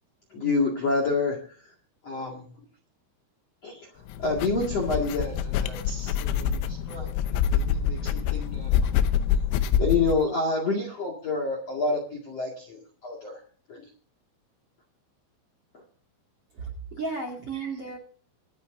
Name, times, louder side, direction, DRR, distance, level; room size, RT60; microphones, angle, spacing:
voice 1, 0.3-1.7 2.0-2.4 3.6-3.9 4.2-8.9 9.8-13.4 13.7-13.9 17.5-17.7, left 3 dB, 45° left, 1 dB, 2.2 m, -29 dB
sound 1, 4.1-10.2, left 8 dB, 90° left, 3.6 m, -26 dB
voice 2, 16.5-18.0, right 4 dB, 40° right, 2 dB, 2.2 m, -34 dB
25.5 x 10.0 x 2.7 m, 0.42 s
omnidirectional pair, 5.9 m